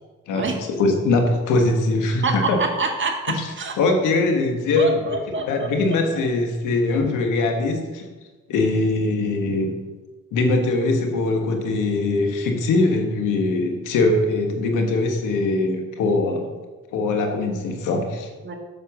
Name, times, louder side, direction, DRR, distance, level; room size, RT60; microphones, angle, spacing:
voice 1, 0.3-2.6 3.3-8.1 8.5-9.7 10.3-16.5 16.9-18.3, left 2 dB, 90° left, 3 dB, 1.6 m, -22 dB
voice 2, 2.2-3.8 4.8-5.7 18.4-18.5, right 4 dB, 40° right, 2 dB, 1.8 m, -26 dB
8.0 x 6.9 x 6.1 m, 1.3 s
cardioid pair, 90°, 30 cm